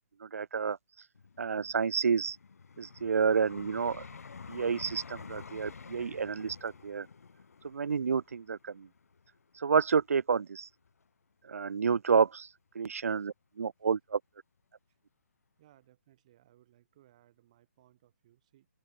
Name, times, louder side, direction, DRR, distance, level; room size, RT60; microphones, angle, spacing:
voice 1, 0.2-0.8 1.4-2.4 2.8-4.0 4.5-7.1 7.6-8.9 9.6-10.7 11.5-12.5 12.7-14.2, right 6 dB, 75° right, 0.8 m, -29 dB
Vehicle, 1.1-10.2 10.8-11.0, left 5 dB, 85° left, 1.4 m, -50 dB
voice 2, 15.6-18.7, right 13 dB, 25° right, 5.1 m, -64 dB
open air
hypercardioid pair, 175°, 8 cm